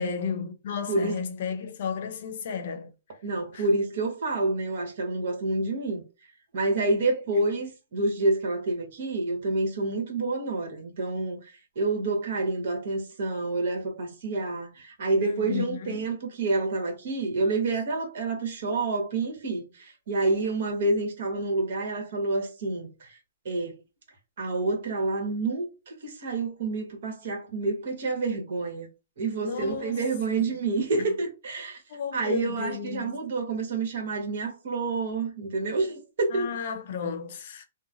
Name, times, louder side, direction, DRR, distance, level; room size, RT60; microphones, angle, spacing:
voice 1, 0.0-2.9 3.5-3.7 15.2-16.2 29.2-30.0 31.0-31.1 31.9-33.2 36.3-37.6, left 6 dB, 55° left, 0.6 m, -33 dB
voice 2, 0.9-1.2 3.2-6.0 6.5-23.2 23.4-23.8 24.4-28.9 29.2-31.8 32.1-36.5, right 3 dB, 60° right, 1.2 m, -28 dB
3.0 x 2.1 x 2.5 m
hypercardioid pair, 150°, 0 cm